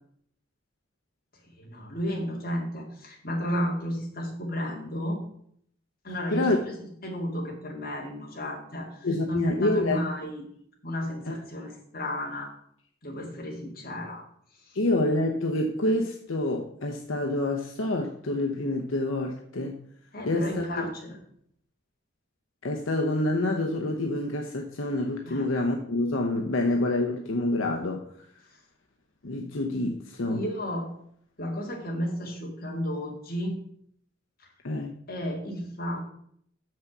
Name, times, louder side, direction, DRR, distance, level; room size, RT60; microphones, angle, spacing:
voice 1, 1.6-5.2 6.0-10.4 10.8-12.5 13.0-14.2 14.7-14.8 20.1-21.2 25.3-25.4 30.3-30.9 31.4-33.6 35.1-36.0, equal, 45° left, 0 dB, 2.2 m, -33 dB
voice 2, 9.0-10.1 11.3-11.4 14.7-19.8 20.3-20.9 22.6-28.0 29.2-30.4 34.6-34.9, left 2 dB, 75° left, 2 dB, 0.8 m, -27 dB
6.8 x 6.2 x 6.0 m, 0.66 s
head